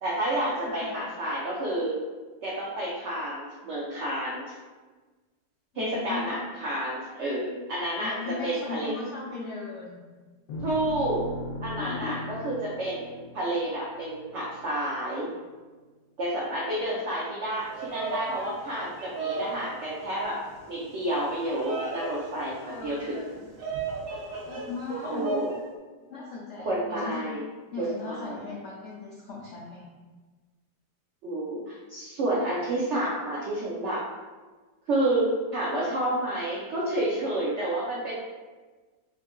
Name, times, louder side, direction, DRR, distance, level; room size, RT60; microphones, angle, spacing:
voice 1, 0.0-2.0 2.4-4.5 5.7-8.2 8.4-8.9 10.6-11.2 11.6-15.3 16.2-20.4 20.7-23.4 25.0-25.5 26.6-27.5 27.8-28.4 31.2-34.0 34.9-38.1, right 1 dB, 85° right, -5 dB, 0.6 m, -30 dB
voice 2, 0.6-1.2 5.7-6.3 8.0-10.0 11.8-12.2 16.9-17.0 22.6-23.3 24.4-25.2 26.1-27.2 27.7-29.9, left 4 dB, 80° left, -5 dB, 0.6 m, -38 dB
sound 1, 10.5-14.9, left 1 dB, 65° left, 1.0 m, -39 dB
Bird vocalization bird call bird song, 17.6-25.6, right 3 dB, 65° right, 1.1 m, -36 dB
3.7 x 2.6 x 2.4 m, 1.3 s
omnidirectional pair, 1.8 m